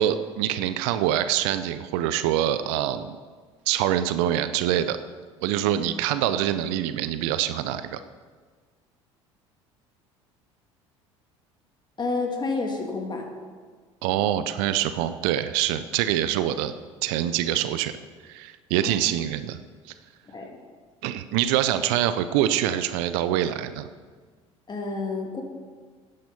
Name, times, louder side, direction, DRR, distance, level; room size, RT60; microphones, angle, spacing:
voice 1, 0.0-3.1 3.7-5.0 5.4-8.0 14.0-16.7 17.0-17.9 18.2-19.6 21.0-23.9, right 11 dB, 65° right, 12 dB, 0.6 m, -25 dB
voice 2, 12.0-13.3 18.8-19.0 20.3-20.6 24.7-25.4, left 3 dB, 30° left, 1 dB, 2.7 m, -29 dB
11.0 x 10.5 x 5.4 m, 1.5 s
figure-of-eight pair, 60°, 16 cm